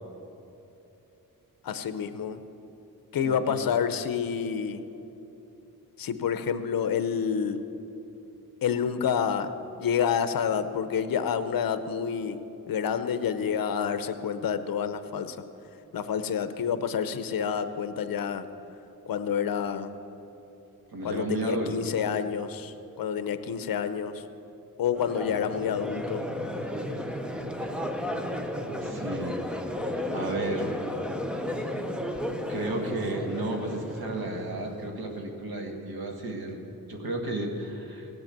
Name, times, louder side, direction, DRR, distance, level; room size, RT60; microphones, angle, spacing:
voice 1, 1.6-2.4 3.1-4.8 6.0-7.6 8.6-9.5 9.8-12.4 12.7-15.4 15.9-18.4 19.1-19.9 21.0-24.2 24.8-26.3, left 7 dB, 70° left, 10 dB, 0.8 m, -28 dB
voice 2, 3.2-3.6 20.9-21.9 28.8-29.4 29.9-30.7 32.5-36.6 36.9-38.1, right 2 dB, 80° right, 2 dB, 1.8 m, -33 dB
Crowd, 24.9-35.1, left 1 dB, 5° right, 0.7 m, -33 dB
17.5 x 8.1 x 7.4 m, 2.9 s
wide cardioid pair, 155°, 36 cm